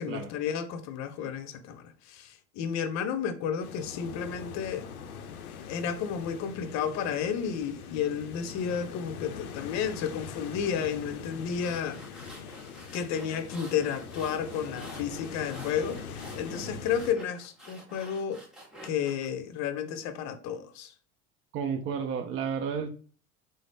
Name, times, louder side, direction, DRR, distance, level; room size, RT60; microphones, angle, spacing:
voice 1, 0.0-4.9 5.7-12.0 12.9-18.4 18.8-20.9, left 7 dB, 40° left, 0.6 m, -32 dB
sound 1, 3.6-17.1, left 6 dB, 85° left, 0.5 m, -42 dB
sound 2, 11.4-19.3, right 1 dB, ahead, 0.9 m, -49 dB
voice 2, 21.5-22.9, right 6 dB, 30° right, 0.5 m, -32 dB
3.7 x 2.0 x 3.3 m
hypercardioid pair, 75°, 42 cm